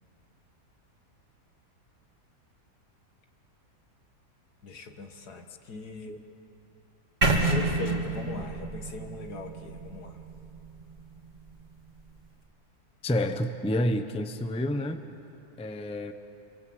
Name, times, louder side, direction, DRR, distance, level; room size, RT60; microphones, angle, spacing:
voice 1, 4.6-6.2 7.5-10.2, left 3 dB, 75° left, 5 dB, 2.2 m, -39 dB
sound 1, 7.2-11.2, right 2 dB, 25° right, 2.6 m, -29 dB
voice 2, 13.0-15.0 15.6-16.1, left 1 dB, 5° left, 8 dB, 0.7 m, -29 dB
28.5 x 25.0 x 7.9 m, 2.9 s
omnidirectional pair, 1.7 m